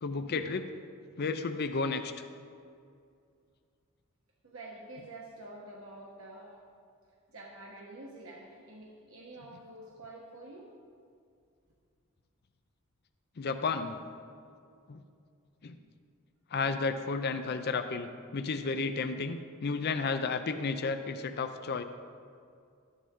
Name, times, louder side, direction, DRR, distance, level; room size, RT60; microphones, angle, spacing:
voice 1, 0.0-0.6 1.2-2.1 13.4-14.0 14.9-15.0 15.6-15.8 16.5-21.8, left 4 dB, 50° left, 8 dB, 0.5 m, -32 dB
voice 2, 4.4-6.6 7.3-10.7, right 2 dB, 70° right, -3 dB, 1.3 m, -48 dB
12.5 x 9.9 x 3.7 m, 2.3 s
head